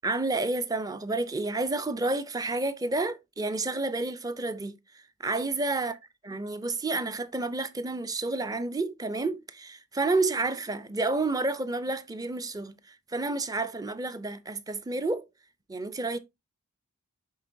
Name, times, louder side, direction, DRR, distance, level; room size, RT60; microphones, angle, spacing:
voice 1, 0.0-4.8 5.2-5.9 6.3-15.2 15.7-16.2, right 2 dB, 15° right, 0.5 m, -30 dB
10.5 x 3.7 x 2.6 m
head